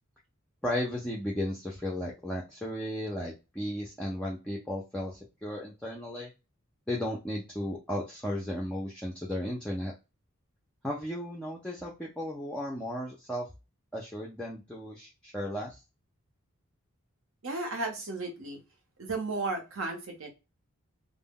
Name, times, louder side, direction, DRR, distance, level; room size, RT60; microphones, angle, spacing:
voice 1, 0.6-6.3 6.9-9.9 10.8-13.5 13.9-15.8, left 1 dB, 5° left, -4 dB, 0.4 m, -35 dB
voice 2, 17.4-18.6 19.0-20.3, right 3 dB, 65° right, 2 dB, 0.8 m, -34 dB
2.2 x 2.0 x 3.5 m, 0.27 s
head